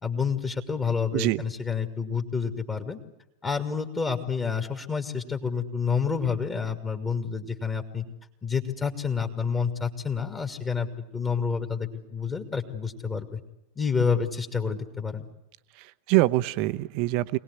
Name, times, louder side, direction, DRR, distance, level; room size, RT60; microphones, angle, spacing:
voice 1, 0.0-3.0 3.4-8.0 8.4-13.4 13.8-15.3, left 6 dB, 20° left, 4 dB, 2.3 m, -29 dB
voice 2, 1.1-1.4 15.7-17.4, right 18 dB, 45° right, 13 dB, 0.9 m, -24 dB
25.5 x 19.0 x 9.7 m, 0.87 s
figure-of-eight pair, 90°, 0 cm